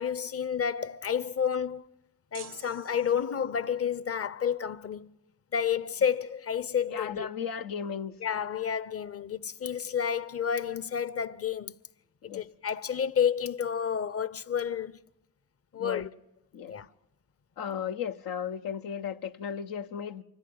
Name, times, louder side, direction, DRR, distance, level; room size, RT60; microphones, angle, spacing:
voice 1, 0.0-1.8 2.3-5.1 5.5-7.3 8.2-11.7 12.3-15.0 15.7-16.1 16.7-16.9, left 7 dB, 45° left, 0.8 m, -30 dB
sound 1, 2.3-3.7, right 11 dB, 75° right, 0.7 m, -49 dB
voice 2, 6.9-8.2 12.2-12.4 15.8-16.1 16.5-16.7 17.6-20.2, left 7 dB, 90° left, 0.9 m, -35 dB
25.0 x 15.0 x 9.5 m
cardioid pair, 70°, 33 cm